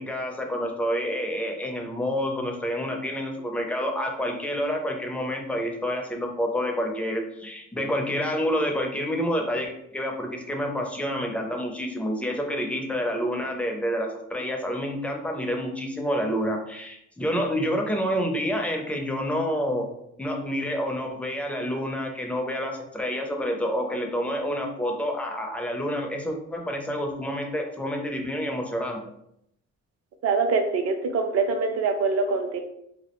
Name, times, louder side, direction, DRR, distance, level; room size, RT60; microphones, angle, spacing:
voice 1, 0.0-19.9 20.2-29.0, equal, 5° left, 2 dB, 0.4 m, -28 dB
voice 2, 30.2-32.6, right 4 dB, 55° right, 5 dB, 0.5 m, -24 dB
2.3 x 2.0 x 2.9 m, 0.77 s
cardioid pair, 90°, 30 cm